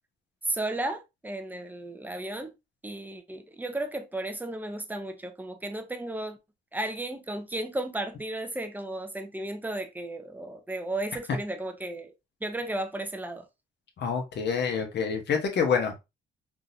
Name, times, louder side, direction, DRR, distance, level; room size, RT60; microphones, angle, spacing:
voice 1, 0.4-2.5 2.8-6.4 6.7-12.1 12.4-13.4, right 1 dB, 10° right, 0.6 m, -34 dB
voice 2, 14.0-16.0, left 6 dB, 60° left, 1.0 m, -27 dB
3.7 x 2.5 x 2.6 m
cardioid pair, 90°, 20 cm